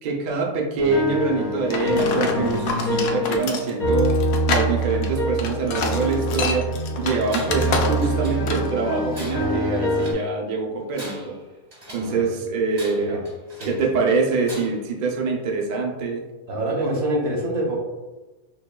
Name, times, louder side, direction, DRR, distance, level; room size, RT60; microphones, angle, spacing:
voice 1, 0.0-4.1 4.5-6.7 7.0-11.3 11.9-13.2 13.6-16.2, right 4 dB, 55° right, 0 dB, 0.5 m, -24 dB
sound 1, 0.8-10.1, equal, 50° left, 1.3 m, -25 dB
sound 2, 1.7-8.2 8.5-8.7, left 4 dB, 80° left, 1.0 m, -28 dB
Tools, 7.3-7.7 8.0-8.7 9.1-10.3 10.8-12.2 12.7-13.9 14.4-14.9, right 1 dB, 20° right, 0.7 m, -41 dB
voice 2, 16.5-17.8, right 1 dB, 85° right, -1 dB, 1.4 m, -26 dB
5.7 x 2.2 x 2.2 m, 1.2 s
omnidirectional pair, 1.5 m